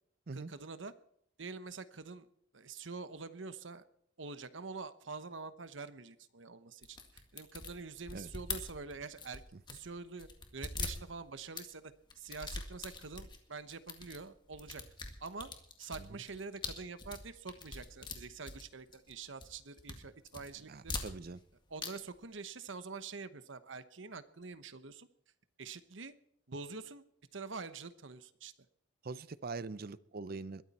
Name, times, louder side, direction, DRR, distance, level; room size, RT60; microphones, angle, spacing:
voice 1, 0.3-0.9 1.4-2.3 2.5-3.8 4.2-9.4 9.7-14.8 15.2-15.5 15.8-21.0 21.7-25.1 25.6-26.1 26.5-27.0 27.3-28.5, right 4 dB, 70° right, 12 dB, 1.0 m, -46 dB
sound 1, 6.8-9.9 10.2-11.7 12.1-13.4 13.7-14.2 14.5-19.1 19.4-20.0 20.3-21.5 21.8-21.9 22.2-22.3, left 3 dB, 25° left, 1.9 m, -43 dB
voice 2, 20.7-21.4 29.0-30.6, right 3 dB, 50° right, 17 dB, 0.6 m, -43 dB
21.5 x 13.5 x 4.3 m, 0.71 s
head